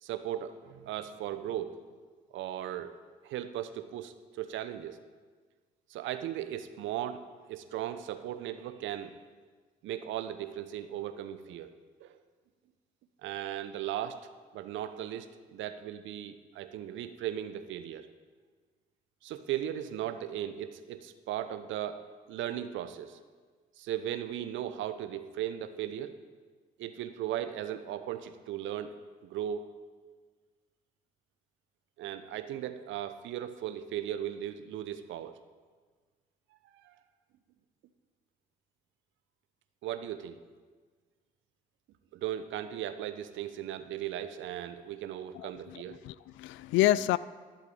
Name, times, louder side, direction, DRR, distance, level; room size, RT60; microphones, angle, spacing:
voice 1, 0.0-1.8 2.3-2.9 3.2-5.0 5.9-7.2 7.5-9.2 9.8-11.7 12.0-12.2 13.2-14.2 14.5-15.3 15.5-18.1 19.2-22.0 22.3-23.2 23.8-26.1 26.8-29.0 29.2-29.6 32.0-35.3 36.6-36.9 39.8-40.4 42.1-46.0, right 11 dB, 65° right, 10 dB, 0.9 m, -37 dB
voice 2, 45.4-47.2, left 15 dB, 65° left, 18 dB, 0.5 m, -28 dB
11.5 x 7.9 x 8.8 m, 1.5 s
hypercardioid pair, 45°, 21 cm